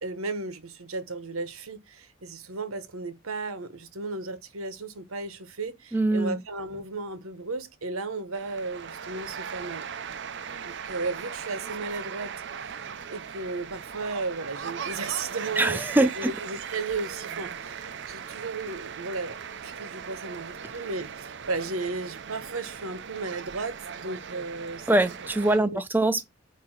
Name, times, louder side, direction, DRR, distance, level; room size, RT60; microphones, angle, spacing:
voice 1, 0.0-9.9 10.6-24.9 25.5-25.8, right 3 dB, 80° right, 1.2 m, -35 dB
voice 2, 5.9-6.4 15.6-16.3 24.9-26.3, right 2 dB, 10° right, 0.3 m, -23 dB
sound 1, 8.3-25.6, right 7 dB, 55° right, 0.6 m, -38 dB
8.5 x 2.9 x 6.0 m
head